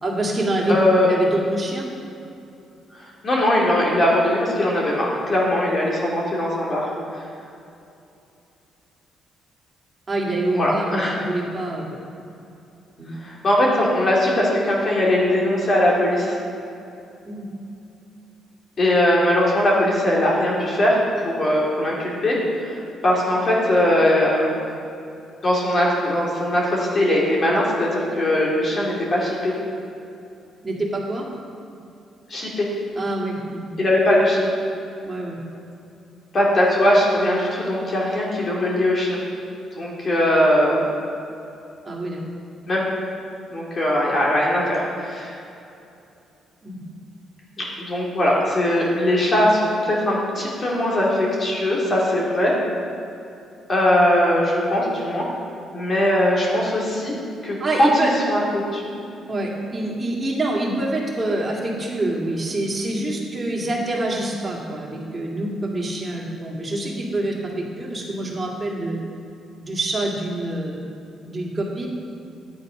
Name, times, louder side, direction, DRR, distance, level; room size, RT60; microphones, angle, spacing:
voice 1, 0.0-0.8 1.0-1.8 10.1-11.8 13.0-13.1 17.2-17.4 30.6-31.2 33.0-33.7 35.1-35.4 41.8-42.2 46.6-46.8 57.6-58.1 59.3-69.0 69.6-70.8 71.3-71.9, right 2 dB, 25° right, -2 dB, 2.4 m, -26 dB
voice 2, 0.7-1.1 2.9-6.9 10.5-11.1 13.2-16.4 18.8-24.5 25.4-29.5 32.3-32.7 33.8-34.4 36.3-39.2 39.7-40.8 42.6-42.8 43.5-45.4 47.6-52.5 53.7-55.3 55.7-57.1 57.4-57.9 58.3-59.0, left 1 dB, 40° left, -4 dB, 2.6 m, -20 dB
10.5 x 8.6 x 5.1 m, 2.7 s
cardioid pair, 90°, 0 cm